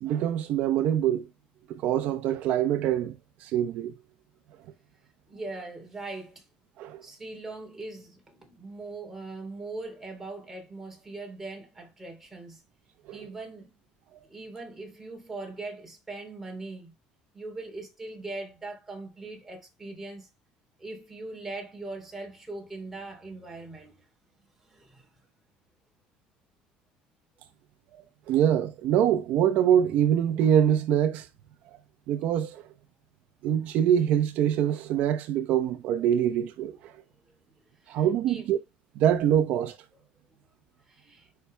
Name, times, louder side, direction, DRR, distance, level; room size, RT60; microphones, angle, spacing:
voice 1, 0.0-1.3 1.7-3.1 3.4-3.9 6.8-7.0 13.1-13.2 28.3-31.3 32.1-32.6 33.4-36.9 37.9-38.6 39.0-39.8, right 10 dB, 60° right, 0.8 m, -24 dB
voice 2, 5.3-6.5 7.0-12.6 13.1-13.7 14.3-16.9 17.3-20.3 20.8-24.0 24.6-25.1 36.9-37.0 37.8-38.5 40.8-41.3, right 2 dB, 10° right, 3.4 m, -41 dB
13.0 x 5.8 x 2.2 m
cardioid pair, 150°, 3 cm